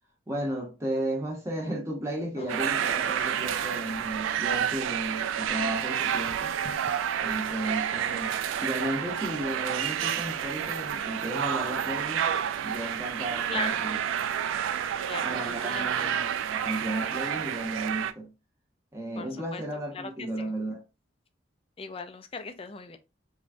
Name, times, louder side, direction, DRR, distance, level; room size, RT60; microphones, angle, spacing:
voice 1, 0.3-6.6 7.2-12.3 12.6-14.0 15.2-18.3 18.9-20.8, right 1 dB, 15° right, 0.7 m, -34 dB
sound 1, 2.5-18.1, right 9 dB, 80° right, 0.3 m, -29 dB
voice 2, 13.5-13.8 15.1-16.2 19.2-19.6 19.9-20.5 21.8-23.0, left 5 dB, 30° left, 0.3 m, -39 dB
3.1 x 2.3 x 2.5 m
head